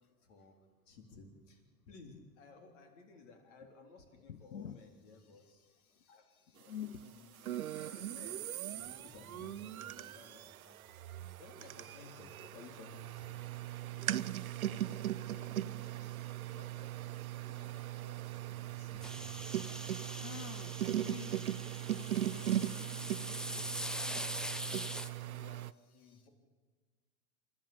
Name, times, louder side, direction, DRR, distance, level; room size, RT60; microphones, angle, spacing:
voice 1, 0.2-0.6 0.9-5.7 6.1-6.2 6.6-6.7 7.0-8.4 8.7-10.8 11.4-13.4 13.8-14.2 14.6-16.1 16.5-19.6 23.3-25.7 25.9-26.3, left 4 dB, 60° left, 5 dB, 3.8 m, -57 dB
voice 2, 4.3-4.8 5.1-8.2 19.7-19.8 20.2-21.5 22.2-23.4 26.0-26.3, left 9 dB, 90° left, 12 dB, 0.8 m, -50 dB
sound 1, 7.4-25.7, right 12 dB, 80° right, 0.6 m, -39 dB
sound 2, 19.0-25.1, equal, ahead, 0.6 m, -43 dB
27.5 x 12.5 x 8.6 m, 1.4 s
figure-of-eight pair, 90°, 42 cm